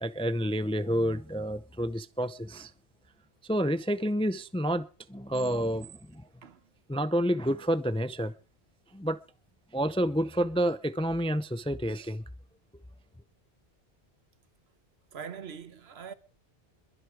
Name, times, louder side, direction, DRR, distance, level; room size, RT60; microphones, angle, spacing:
voice 1, 0.0-2.7 3.5-6.2 6.9-8.3 8.9-9.2 9.7-12.2, equal, 10° left, 0.4 m, -29 dB
voice 2, 15.1-16.1, right 7 dB, 70° right, 1.2 m, -42 dB
22.0 x 8.0 x 4.9 m
omnidirectional pair, 1.1 m